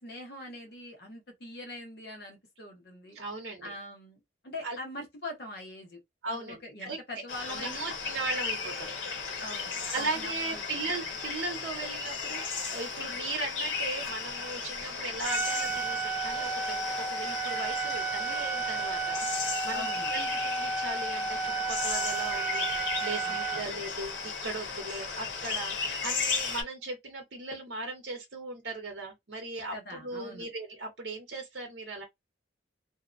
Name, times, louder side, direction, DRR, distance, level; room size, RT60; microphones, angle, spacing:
voice 1, 0.0-3.2 3.6-6.0 6.2-7.9 9.4-10.8 19.7-20.1 23.2-23.6 29.7-30.5, left 1 dB, 55° left, 0.9 m, -43 dB
voice 2, 3.1-3.8 4.6-4.8 6.2-8.9 9.2-12.4 12.7-32.0, right 3 dB, 70° right, 0.8 m, -38 dB
sound 1, 7.3-26.6, left 5 dB, 85° left, 0.9 m, -35 dB
Trumpet, 15.2-23.7, right 5 dB, 5° right, 0.3 m, -32 dB
2.6 x 2.1 x 2.4 m
head